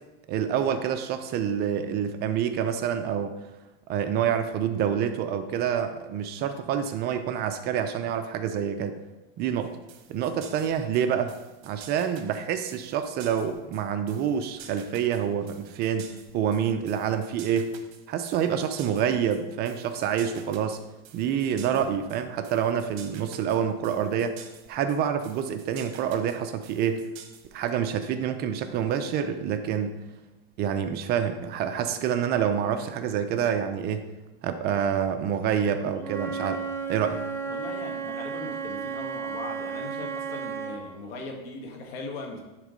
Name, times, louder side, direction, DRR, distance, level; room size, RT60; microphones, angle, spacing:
voice 1, 0.3-3.3 3.9-9.0 9.4-9.8 10.1-11.3 11.6-17.8 18.1-20.8 21.1-24.4 24.7-27.1 27.5-30.0 30.6-34.1 34.4-36.6 36.9-37.2, right 8 dB, 35° right, 8 dB, 0.5 m, -27 dB
hats peace, 9.6-27.7, right 8 dB, 65° right, 1.2 m, -49 dB
Wind instrument woodwind instrument, 36.0-40.8, right 5 dB, 10° left, 0.7 m, -33 dB
voice 2, 37.4-42.4, left 3 dB, 70° left, 2 dB, 2.0 m, -39 dB
10.5 x 3.7 x 5.2 m, 1.1 s
supercardioid pair, 145°, 30 cm